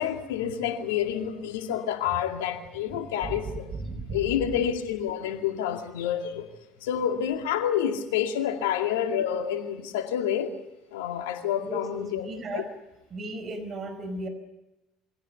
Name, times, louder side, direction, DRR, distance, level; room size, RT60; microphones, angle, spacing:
voice 1, 0.0-3.7 4.1-6.4 6.8-10.5 10.9-12.3 12.5-12.6, left 9 dB, 75° left, 2.3 m, -28 dB
voice 2, 3.2-4.6 11.6-12.7 13.1-14.3, right 2 dB, 40° right, 5.0 m, -35 dB
23.5 x 17.0 x 9.3 m
hypercardioid pair, 65°, 0 cm